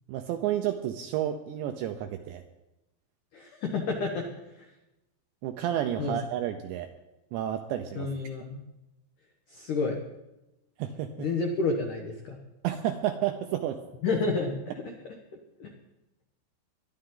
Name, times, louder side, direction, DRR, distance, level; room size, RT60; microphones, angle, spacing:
voice 1, 0.1-2.4 5.4-6.9 7.3-8.1 10.8-11.1 12.6-13.8, right 11 dB, 80° right, 6 dB, 2.6 m, -31 dB
voice 2, 3.3-4.3 6.0-6.2 8.0-8.6 9.5-10.0 11.2-12.4 14.0-14.6 15.6-15.7, left 3 dB, 85° left, 2 dB, 1.8 m, -29 dB
21.0 x 12.0 x 3.8 m, 0.97 s
omnidirectional pair, 5.8 m